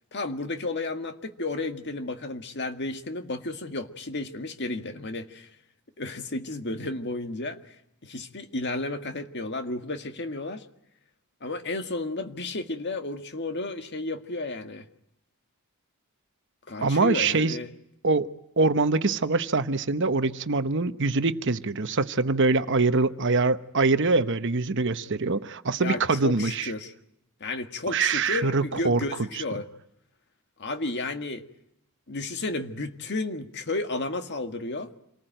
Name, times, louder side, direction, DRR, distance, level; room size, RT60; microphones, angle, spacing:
voice 1, 0.1-5.5 6.0-7.8 8.0-10.7 11.4-14.9 16.7-17.7 25.8-26.9 27.4-29.7 30.6-31.4 32.1-34.9, left 2 dB, 50° left, 7 dB, 1.8 m, -32 dB
voice 2, 16.8-17.6 18.0-18.3 18.6-26.7 27.9-29.0, right 3 dB, 55° right, 11 dB, 1.0 m, -24 dB
27.5 x 19.5 x 9.1 m, 0.79 s
head